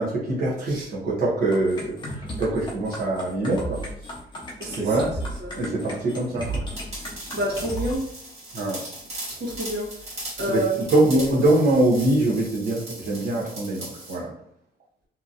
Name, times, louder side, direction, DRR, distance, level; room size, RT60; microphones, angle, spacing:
voice 1, 0.0-3.8 4.7-5.1 5.5-6.6 8.5-8.8 10.5-10.6 10.9-14.3, right 2 dB, 65° right, -6 dB, 0.8 m, -23 dB
sound 1, 1.5-7.9, right 1 dB, 30° left, 0.7 m, -34 dB
voice 2, 4.6-5.1 5.4-5.5 7.3-8.1 9.3-9.9 10.4-10.9, right 1 dB, 85° right, -3 dB, 1.1 m, -28 dB
sound 2, 6.7-14.2, right 1 dB, 40° right, 1.4 m, -39 dB
2.8 x 2.6 x 2.5 m, 0.67 s
cardioid pair, 175°, 17 cm